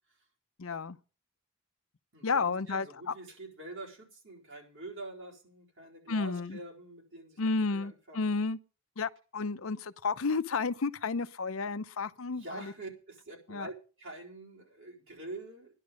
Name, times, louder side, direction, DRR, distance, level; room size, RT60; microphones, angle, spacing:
voice 1, 0.6-1.0 2.2-3.1 6.1-6.6 7.4-8.6 9.0-12.7 13.5-13.7, left 4 dB, 75° left, 0.7 m, -32 dB
voice 2, 2.1-8.4 12.2-15.7, right 2 dB, 65° right, 4.3 m, -46 dB
13.5 x 11.0 x 5.1 m
head